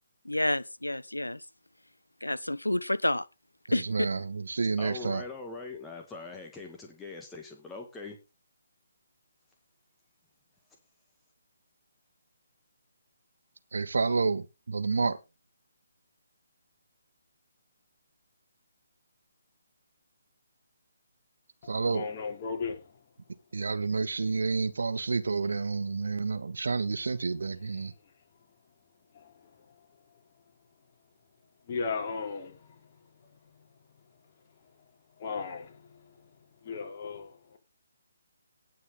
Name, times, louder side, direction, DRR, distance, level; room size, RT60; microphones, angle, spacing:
voice 1, 0.2-1.4 2.2-3.3 3.7-4.1, left 1 dB, 85° left, 0.8 m, -29 dB
voice 2, 3.7-5.2 13.7-15.2 21.7-22.1 23.5-27.9, right 4 dB, 60° right, 1.7 m, -29 dB
voice 3, 4.8-8.2, left 3 dB, 10° left, 2.0 m, -42 dB
voice 4, 21.6-22.9 29.1-29.3 31.7-32.8 35.2-36.0 36.6-37.6, left 5 dB, 35° left, 3.4 m, -36 dB
18.5 x 6.6 x 3.9 m
figure-of-eight pair, 140°, 0 cm